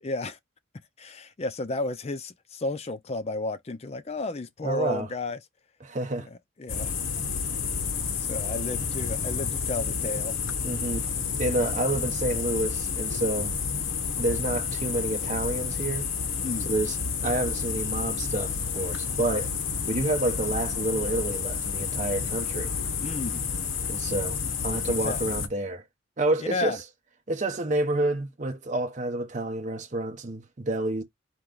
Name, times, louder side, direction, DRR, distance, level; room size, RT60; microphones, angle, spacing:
voice 1, 0.0-0.4 1.0-5.4 6.3-7.0 8.2-10.3 16.4-16.7 23.0-23.4 24.8-25.2 26.4-26.8, left 2 dB, 30° left, 0.4 m, -32 dB
voice 2, 4.6-5.1 5.8-6.3 10.6-11.1 11.4-13.5 14.2-16.1 16.7-17.0 17.2-19.5 19.9-22.7 23.9-25.8 26.2-26.8 27.3-31.0, right 2 dB, 35° right, 0.7 m, -29 dB
sound 1, 6.7-25.5, left 6 dB, 70° left, 0.9 m, -30 dB
4.5 x 2.9 x 3.8 m
head